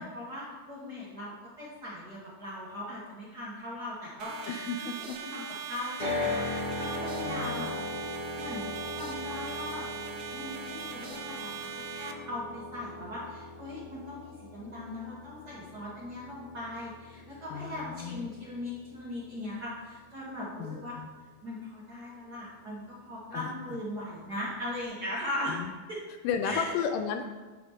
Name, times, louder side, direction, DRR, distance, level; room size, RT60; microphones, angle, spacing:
voice 1, 0.0-4.5 4.8-7.7 8.4-8.7 8.9-9.8 10.3-21.0 21.4-25.6 25.9-26.0 26.4-26.7, left 1 dB, 45° right, -7 dB, 1.3 m, -39 dB
sound 1, 4.2-12.1, right 7 dB, 85° right, 1.6 m, -41 dB
voice 2, 4.5-5.2 7.2-7.8 17.5-18.3 20.6-21.1 23.3-23.5 25.5-25.7 26.2-27.3, left 6 dB, 85° left, 6 dB, 2.1 m, -34 dB
sound 2, 6.0-20.1, left 2 dB, 30° left, 2.4 m, -39 dB
10.5 x 4.8 x 3.6 m, 1.3 s
omnidirectional pair, 3.8 m